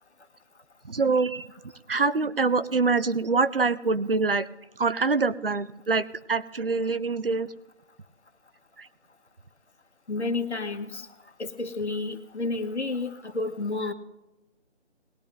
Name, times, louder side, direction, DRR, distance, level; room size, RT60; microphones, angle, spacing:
voice 1, 0.9-1.5 1.9-4.4 4.8-7.5 8.8-8.9, right 4 dB, 55° right, 14 dB, 0.7 m, -25 dB
voice 2, 10.1-11.1 11.4-13.9, left 3 dB, 70° left, 7 dB, 1.7 m, -30 dB
20.5 x 11.0 x 2.7 m, 0.96 s
figure-of-eight pair, 175°, 35 cm